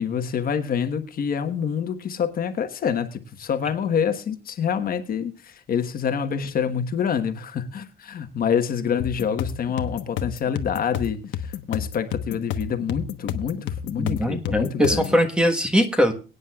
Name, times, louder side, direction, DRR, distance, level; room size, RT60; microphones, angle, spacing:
voice 1, 0.0-15.1, left 7 dB, 50° left, 1.3 m, -27 dB
sound 1, 9.0-15.2, left 9 dB, 85° left, 1.1 m, -31 dB
voice 2, 14.0-16.1, equal, 5° right, 1.3 m, -21 dB
23.0 x 9.5 x 2.4 m
cardioid pair, 160°, 19 cm